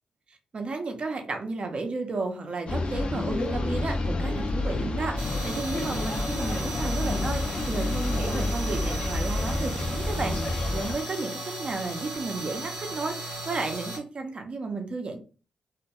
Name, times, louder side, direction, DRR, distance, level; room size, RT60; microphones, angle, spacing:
voice 1, 0.3-15.2, right 3 dB, 45° right, 4 dB, 0.6 m, -33 dB
sound 1, 2.7-10.9, left 2 dB, 50° left, 0.5 m, -29 dB
sound 2, 5.2-14.0, right 2 dB, 90° right, 0.7 m, -36 dB
2.2 x 2.2 x 2.8 m, 0.35 s
supercardioid pair, 50°, 2 cm